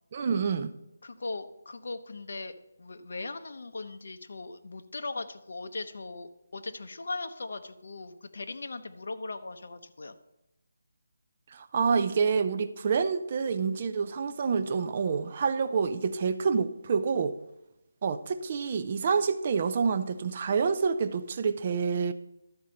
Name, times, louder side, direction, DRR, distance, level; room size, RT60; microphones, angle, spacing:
voice 1, 0.1-0.7 11.5-17.4 18.0-22.1, right 5 dB, 30° right, 0.5 m, -27 dB
voice 2, 1.0-2.5 2.8-10.2, left 3 dB, 60° left, 0.8 m, -39 dB
12.5 x 4.4 x 6.4 m
hypercardioid pair, 175°, 0 cm